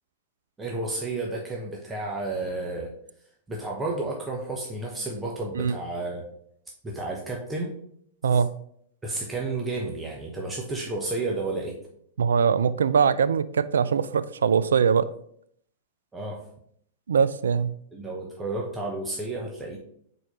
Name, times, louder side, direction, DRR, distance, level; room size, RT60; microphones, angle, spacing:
voice 1, 0.6-2.9 3.5-6.2 6.8-7.7 8.3-8.4 9.0-11.7 16.1-16.4 17.9-19.8, right 2 dB, 15° right, -2 dB, 1.1 m, -31 dB
voice 2, 12.2-15.1 17.1-17.7, right 6 dB, 75° right, 15 dB, 0.3 m, -22 dB
4.5 x 4.2 x 5.0 m, 0.68 s
hypercardioid pair, 105°, 0 cm